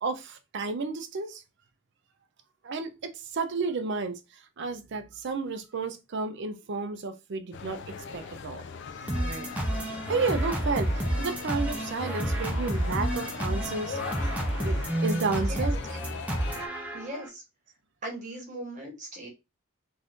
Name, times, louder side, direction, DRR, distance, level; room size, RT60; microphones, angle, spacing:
voice 1, 0.0-1.4 2.6-4.2 4.6-8.6 9.2-9.5 9.9-14.0 14.6-16.0, right 4 dB, 55° right, 0.4 m, -32 dB
sound 1, 7.5-16.7, left 5 dB, 55° left, 0.3 m, -40 dB
sound 2, 9.1-17.3, right 1 dB, 5° right, 0.5 m, -30 dB
voice 2, 15.3-15.7 16.9-17.4 18.0-19.3, right 1 dB, 35° right, 1.1 m, -39 dB
2.6 x 2.4 x 3.5 m
head